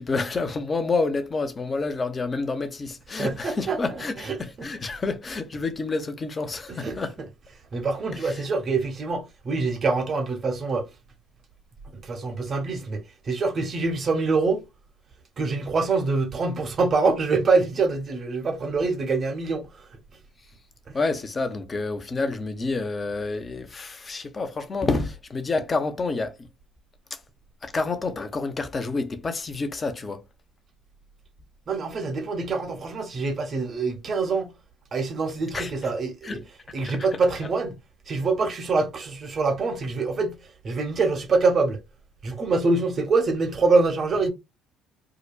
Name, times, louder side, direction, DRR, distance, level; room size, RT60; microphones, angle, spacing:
voice 1, 0.0-7.1 8.2-8.4 20.9-26.5 27.1-27.2 27.6-30.2 35.5-35.7 36.2-36.4 36.8-37.1, left 3 dB, 30° left, 0.8 m, -28 dB
voice 2, 3.2-4.7 6.7-7.0 7.7-10.8 11.9-14.6 15.4-19.7 20.9-21.0 31.7-34.5 34.9-36.4 36.7-37.8 38.1-40.4 40.6-41.8 42.2-44.3, right 3 dB, 45° right, 1.1 m, -25 dB
4.9 x 2.3 x 2.5 m
hypercardioid pair, 60°, 0 cm